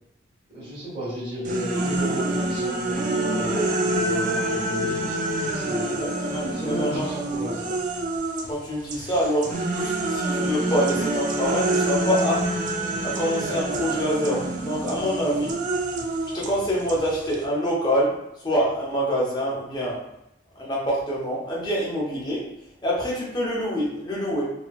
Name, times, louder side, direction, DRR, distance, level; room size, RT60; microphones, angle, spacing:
voice 1, 0.5-5.9 6.5-7.7, equal, 25° right, -9 dB, 1.3 m, -33 dB
sound 1, 1.4-8.5 8.9-17.4, right 2 dB, 45° right, 0.3 m, -27 dB
voice 2, 6.0-7.0 8.5-12.4 13.0-15.5 16.3-18.1 18.4-20.0 20.6-22.4 22.8-24.4, equal, 20° left, -5 dB, 0.7 m, -26 dB
2.7 x 2.5 x 2.3 m, 0.84 s
head